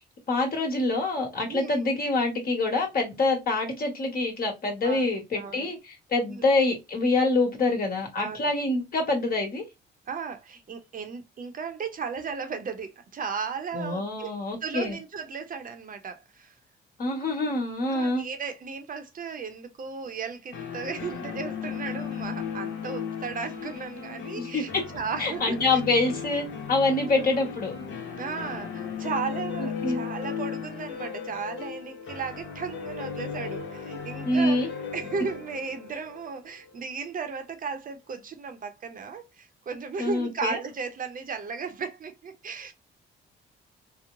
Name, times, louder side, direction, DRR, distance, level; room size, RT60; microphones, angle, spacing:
voice 1, 0.3-9.6 13.7-15.0 17.0-18.2 24.3-24.8 25.2-27.7 29.6-30.0 34.3-34.7 40.0-40.6, left 2 dB, 45° left, 1.3 m, -26 dB
voice 2, 4.8-5.7 6.3-6.4 8.2-8.5 10.1-14.3 14.6-16.5 17.9-25.8 26.9-27.1 28.2-34.6 34.9-42.7, right 5 dB, 45° right, 0.6 m, -35 dB
sound 1, 20.5-37.2, left 7 dB, 75° left, 0.8 m, -36 dB
2.9 x 2.1 x 2.5 m
cardioid pair, 90°, 20 cm